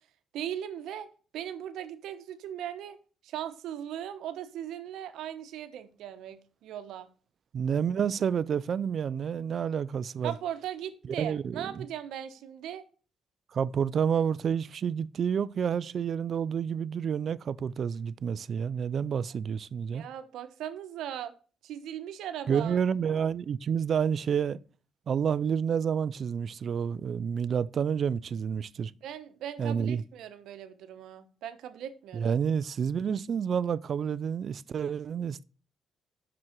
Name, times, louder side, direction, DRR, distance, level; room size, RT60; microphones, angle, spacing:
voice 1, 0.3-1.1 1.3-3.0 3.2-7.1 10.2-12.9 19.9-21.3 21.6-22.8 29.0-32.4, right 10 dB, 85° right, 1.0 m, -38 dB
voice 2, 7.5-10.3 11.2-11.9 13.5-20.1 22.5-24.6 25.1-28.9 29.6-30.0 32.1-35.4, right 7 dB, 55° right, 0.4 m, -29 dB
6.1 x 6.1 x 4.4 m
cardioid pair, 90°, 0 cm